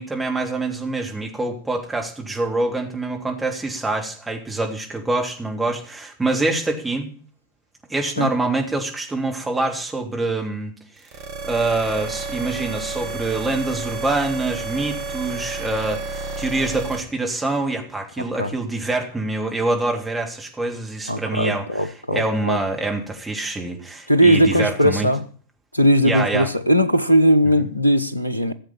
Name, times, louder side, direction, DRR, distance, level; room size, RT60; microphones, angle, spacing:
voice 1, 0.0-7.1 7.9-10.7 11.4-25.1 26.0-26.5 27.6-27.7, right 2 dB, 10° right, 3.3 m, -25 dB
sound 1, 11.0-17.0, right 3 dB, 50° right, 3.0 m, -31 dB
voice 2, 21.1-22.6 24.1-25.2 25.7-28.5, equal, 85° left, 1.0 m, -18 dB
15.0 x 7.5 x 8.7 m
figure-of-eight pair, 90°, 0 cm